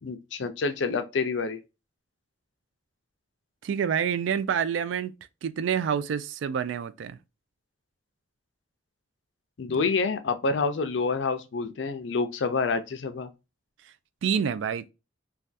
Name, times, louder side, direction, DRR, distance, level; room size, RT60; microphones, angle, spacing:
voice 1, 0.0-1.6 9.6-13.3, left 4 dB, 75° left, 0.5 m, -27 dB
voice 2, 3.6-5.1 5.4-7.2 14.2-14.9, right 7 dB, 90° right, 0.3 m, -27 dB
3.3 x 2.3 x 2.5 m
head